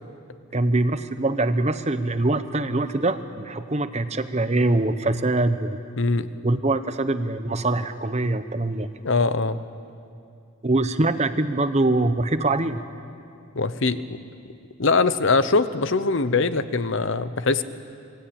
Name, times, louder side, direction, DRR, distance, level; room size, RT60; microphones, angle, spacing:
voice 1, 0.5-5.8 6.4-8.9 10.6-12.8, right 2 dB, 30° right, 11 dB, 0.9 m, -23 dB
voice 2, 6.0-6.3 9.0-9.6 13.6-14.0 14.8-17.6, left 3 dB, 55° left, 13 dB, 0.8 m, -22 dB
27.0 x 19.5 x 8.8 m, 2.4 s
head